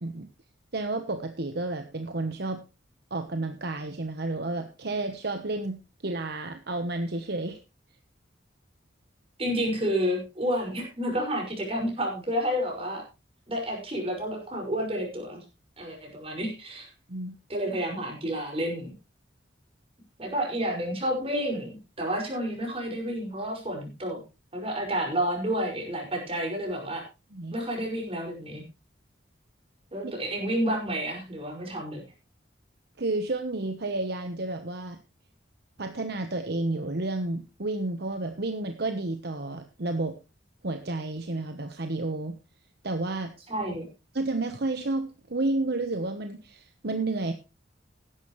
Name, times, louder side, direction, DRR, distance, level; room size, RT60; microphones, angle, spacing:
voice 1, 0.7-2.6 3.1-7.6 17.1-17.3 27.3-27.5 30.0-30.1 33.0-35.0 35.8-40.2 40.6-42.4 42.8-43.3 44.1-47.3, right 2 dB, 60° right, 8 dB, 1.1 m, -31 dB
voice 2, 9.4-13.0 13.5-15.4 15.8-16.9 17.5-18.9 20.2-24.2 24.5-27.0 27.5-28.6 29.9-32.0 43.5-43.8, equal, 30° right, 1 dB, 5.8 m, -30 dB
16.0 x 11.5 x 3.2 m, 0.28 s
head